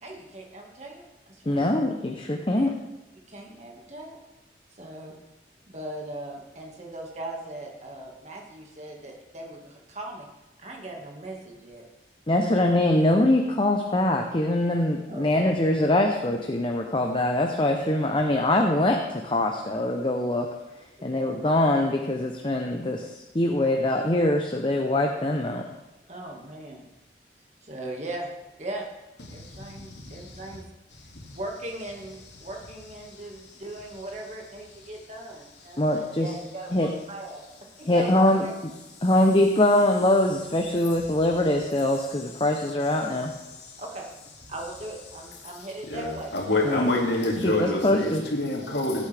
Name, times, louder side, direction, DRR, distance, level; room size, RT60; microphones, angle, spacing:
voice 1, 0.0-1.7 2.5-2.7 3.3-4.2 4.8-5.2 5.7-10.3 10.6-11.8 12.4-12.5 15.1-15.4 21.0-21.2 26.1-26.8 27.6-28.3 28.6-28.9 29.3-30.6 31.3-37.4 37.7-38.5 39.1-39.2 43.8-44.1 44.5-46.9 47.4-47.8, right 1 dB, 40° right, 0 dB, 1.9 m, -39 dB
voice 2, 1.5-2.7 12.3-20.5 21.0-25.6 35.8-36.3 36.7-36.9 37.9-38.5 39.0-43.3 46.6-46.9 47.4-48.2, left 1 dB, 30° left, 3 dB, 0.8 m, -23 dB
voice 3, 29.3-30.4 45.9-49.1, left 2 dB, 75° left, -1 dB, 2.5 m, -27 dB
17.0 x 8.3 x 3.5 m, 1.0 s
head